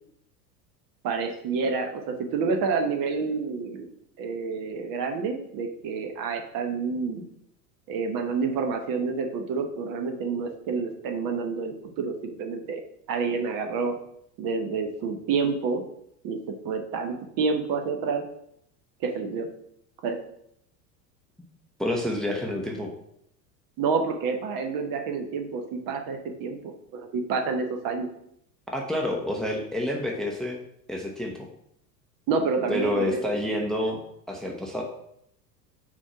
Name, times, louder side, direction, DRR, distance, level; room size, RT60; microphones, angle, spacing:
voice 1, 1.0-3.9 4.2-7.2 7.9-12.8 13.1-13.9 14.4-15.8 16.2-18.2 19.0-19.5 20.0-20.2 23.8-28.1 32.3-33.2, right 4 dB, 40° right, 5 dB, 1.1 m, -28 dB
voice 2, 21.8-22.9 28.7-30.6 30.9-31.3 32.7-34.0 34.3-34.8, left 1 dB, ahead, 1 dB, 0.8 m, -28 dB
4.5 x 4.3 x 5.7 m, 0.72 s
hypercardioid pair, 85°, 50 cm